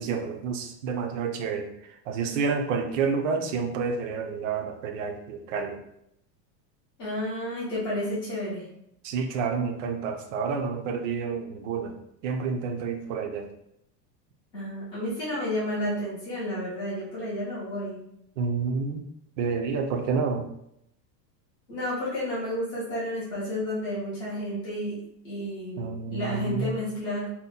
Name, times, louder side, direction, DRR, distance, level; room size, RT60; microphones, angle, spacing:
voice 1, 0.0-1.7 2.1-5.8 9.0-11.9 12.2-13.5 18.4-19.0 19.4-20.4 25.8-26.8, right 5 dB, 50° right, 5 dB, 0.5 m, -29 dB
voice 2, 7.0-8.7 14.5-18.1 21.7-25.0 25.2-27.3, equal, 10° left, -10 dB, 0.4 m, -31 dB
2.7 x 2.1 x 3.9 m, 0.77 s
supercardioid pair, 175°, 50 cm